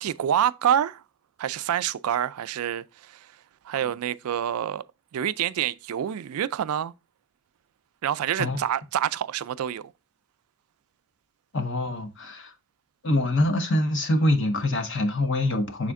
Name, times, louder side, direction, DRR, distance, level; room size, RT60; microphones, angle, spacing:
voice 1, 0.0-1.0 1.4-3.3 3.6-4.8 5.1-6.9 8.0-9.9, right 9 dB, 80° right, 0.3 m, -27 dB
voice 2, 11.5-12.5 13.0-15.9, left 1 dB, 55° left, 1.0 m, -24 dB
6.3 x 4.2 x 3.6 m
head